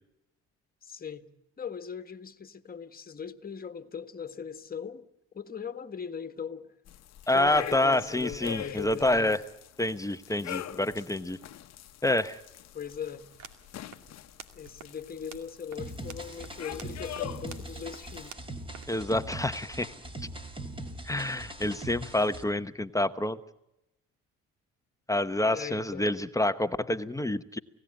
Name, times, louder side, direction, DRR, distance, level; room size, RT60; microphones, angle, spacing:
voice 1, 0.8-1.3 1.6-5.1 5.3-6.7 7.3-9.3 12.7-13.3 14.5-18.4 25.5-26.1, left 7 dB, 30° left, 1.6 m, -39 dB
sound 1, 6.9-18.3, left 12 dB, 60° left, 1.0 m, -44 dB
voice 2, 7.3-9.4 9.8-11.4 12.0-12.4 18.9-19.9 21.0-23.4 25.1-27.6, left 1 dB, 10° left, 0.9 m, -27 dB
sound 2, 13.2-19.5, right 8 dB, 85° right, 2.3 m, -52 dB
sound 3, 15.8-22.4, right 1 dB, 20° right, 3.3 m, -41 dB
29.5 x 17.0 x 8.8 m
cardioid pair, 105°, 29 cm